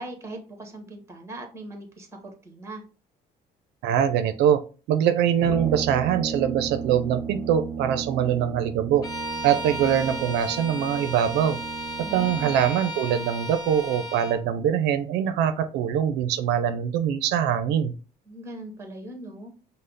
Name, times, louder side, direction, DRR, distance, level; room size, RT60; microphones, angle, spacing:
voice 1, 0.0-2.1 2.4-2.8 12.0-12.5 18.3-19.6, right 1 dB, 15° right, 3 dB, 1.2 m, -39 dB
voice 2, 3.8-4.6 4.9-9.0 9.4-11.6 12.0-18.0, right 9 dB, 85° right, 9 dB, 0.5 m, -23 dB
Brass instrument, 5.4-12.9, right 6 dB, 5° left, 1.6 m, -35 dB
Bowed string instrument, 9.0-14.4, equal, 20° left, 1.0 m, -35 dB
5.4 x 2.0 x 3.8 m, 0.36 s
cardioid pair, 110°, 17 cm